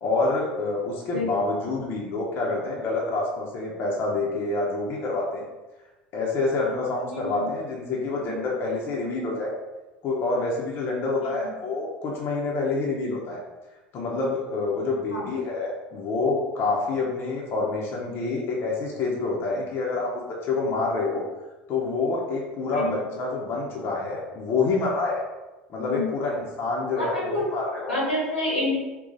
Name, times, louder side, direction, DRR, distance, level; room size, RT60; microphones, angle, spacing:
voice 1, 0.0-5.5 6.1-9.5 10.0-13.4 13.9-21.2 21.7-25.2 25.7-28.0, left 3 dB, 40° left, -3 dB, 0.8 m, -27 dB
voice 2, 27.0-27.5 27.9-28.7, left 1 dB, 90° left, -4 dB, 1.2 m, -27 dB
3.9 x 2.3 x 3.9 m, 1.1 s
figure-of-eight pair, 75°, 6 cm